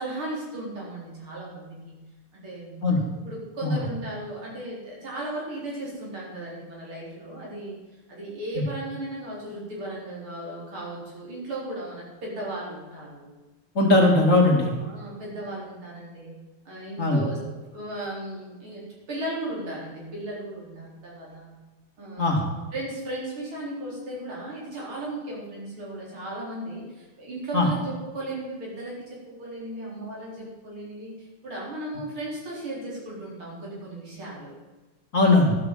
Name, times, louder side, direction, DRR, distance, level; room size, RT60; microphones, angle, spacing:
voice 1, 0.0-2.0 2.3-2.9 3.2-7.7 8.1-13.4 14.8-16.3 16.6-21.6 22.0-22.5 22.7-34.5, right 1 dB, 70° right, -4 dB, 5.1 m, -36 dB
voice 2, 13.8-14.7 17.0-17.2 22.2-22.4 27.5-27.7 35.1-35.6, left 2 dB, 35° left, 0 dB, 2.3 m, -19 dB
12.5 x 8.4 x 7.4 m, 1.2 s
omnidirectional pair, 2.4 m